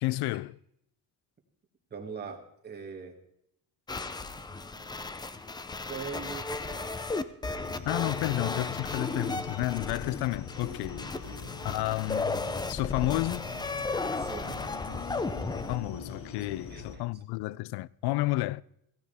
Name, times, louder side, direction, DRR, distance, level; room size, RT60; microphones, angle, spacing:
voice 1, 0.0-0.6 7.9-11.0 11.6-13.5 15.5-18.6, left 19 dB, 90° left, 0.5 m, -31 dB
voice 2, 1.9-3.2 4.3-5.0 5.9-6.9 11.3-11.4 14.1-14.6 16.4-17.0, right 6 dB, 25° right, 2.0 m, -43 dB
sound 1, 3.9-15.8, left 3 dB, 10° left, 0.4 m, -35 dB
sound 2, 7.6-17.0, left 5 dB, 35° left, 1.3 m, -43 dB
15.5 x 15.0 x 3.5 m
cardioid pair, 160°, 38 cm